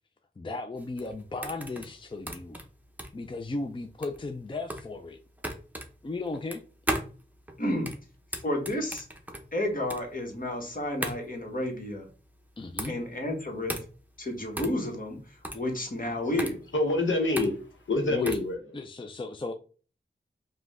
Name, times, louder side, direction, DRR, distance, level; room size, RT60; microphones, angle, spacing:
voice 1, 0.4-2.6 3.1-5.2 6.0-6.6 12.6-12.9 18.1-18.3 18.7-19.5, left 3 dB, 25° left, 0.4 m, -36 dB
sound 1, 0.8-18.5, right 1 dB, 10° right, 0.8 m, -38 dB
voice 2, 7.6-7.9 8.4-9.1 9.5-12.1 12.9-13.7 14.2-16.6, left 1 dB, 45° left, 1.2 m, -31 dB
voice 3, 16.7-18.8, left 2 dB, 85° left, 1.0 m, -27 dB
4.9 x 2.3 x 3.6 m
wide cardioid pair, 65°, 20 cm